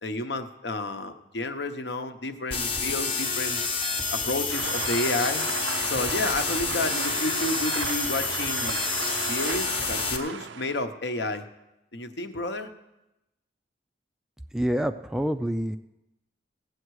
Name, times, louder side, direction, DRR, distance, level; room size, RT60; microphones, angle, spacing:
voice 1, 0.0-3.6 4.1-5.4 5.8-8.8 9.2-11.5 11.9-12.7, left 2 dB, 65° left, 7 dB, 0.9 m, -31 dB
sound 1, 2.5-10.2, left 4 dB, 30° left, 0.9 m, -28 dB
sound 2, 4.5-10.8, right 7 dB, 80° right, 0.5 m, -35 dB
voice 2, 14.5-15.8, equal, 5° right, 9 dB, 0.3 m, -27 dB
17.5 x 7.9 x 4.8 m, 0.93 s
head